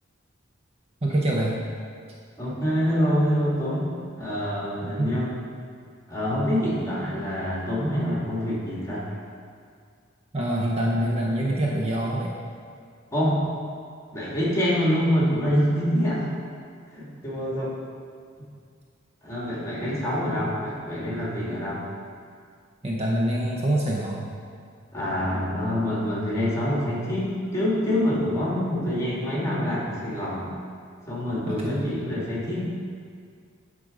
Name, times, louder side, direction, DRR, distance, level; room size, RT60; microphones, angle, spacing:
voice 1, 1.0-1.6 4.8-5.1 10.3-12.4 20.0-20.2 22.8-24.3 31.5-31.8, right 1 dB, 30° right, -3 dB, 0.7 m, -25 dB
voice 2, 2.4-3.9 4.2-5.4 6.1-9.2 13.1-13.5 14.1-16.3 16.9-17.7 19.2-21.8 24.9-30.5 31.1-32.6, equal, 15° left, -6 dB, 1.7 m, -26 dB
9.2 x 3.8 x 5.0 m, 2.2 s
head